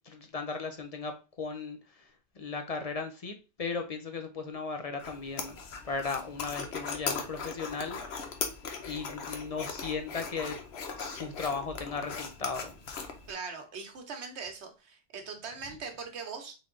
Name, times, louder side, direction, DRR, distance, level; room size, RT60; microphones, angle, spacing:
voice 1, 0.1-2.1 2.4-5.6 5.8-8.3 8.8-10.6 11.0-12.7, left 4 dB, 45° left, 0.5 m, -36 dB
sound 1, 5.0-13.3, left 5 dB, 70° left, 1.0 m, -39 dB
voice 2, 13.3-16.5, right 5 dB, 75° right, 1.2 m, -41 dB
3.9 x 3.5 x 3.7 m
omnidirectional pair, 1.1 m